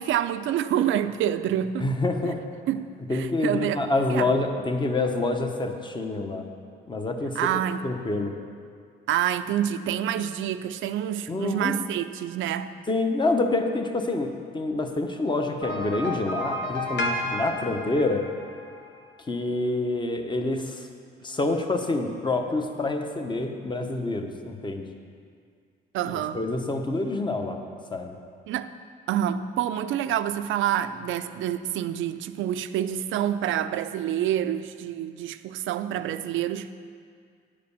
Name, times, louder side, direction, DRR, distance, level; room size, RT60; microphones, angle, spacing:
voice 1, 0.0-1.9 2.2-2.3 2.7-4.3 7.4-7.8 9.1-12.7 24.2-24.3 25.9-26.4 28.5-28.7 29.1-36.7, right 10 dB, 75° right, 0.5 m, -27 dB
voice 2, 1.8-2.4 3.1-6.4 6.9-7.4 7.8-8.3 11.3-11.7 12.9-18.2 19.3-20.9 21.2-24.9 26.0-27.6 27.9-28.2, left 2 dB, 25° left, 1.0 m, -27 dB
sound 1, 15.6-19.0, left 1 dB, 65° left, 1.0 m, -32 dB
9.6 x 5.1 x 6.9 m
cardioid pair, 90°, 20 cm